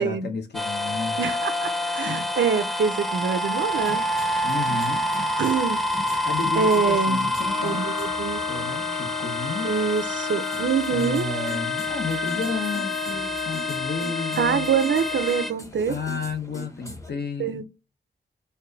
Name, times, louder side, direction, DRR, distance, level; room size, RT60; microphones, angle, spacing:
voice 1, 0.0-1.2 2.0-2.3 4.4-5.0 6.2-7.8 8.5-9.7 10.9-14.7 15.9-17.6, left 4 dB, 60° left, 1.1 m, -32 dB
sound 1, 0.5-15.5, left 1 dB, ahead, 0.3 m, -28 dB
voice 2, 1.2-4.0 5.4-5.8 6.1-6.2 6.6-7.2 7.6-8.4 9.6-11.3 14.4-16.0 17.4-17.6, right 6 dB, 80° right, 0.6 m, -25 dB
sound 2, 3.7-17.1, equal, 15° left, 0.8 m, -42 dB
Trumpet, 7.4-15.6, left 6 dB, 35° left, 2.7 m, -32 dB
4.5 x 2.7 x 4.0 m
wide cardioid pair, 115°, 19 cm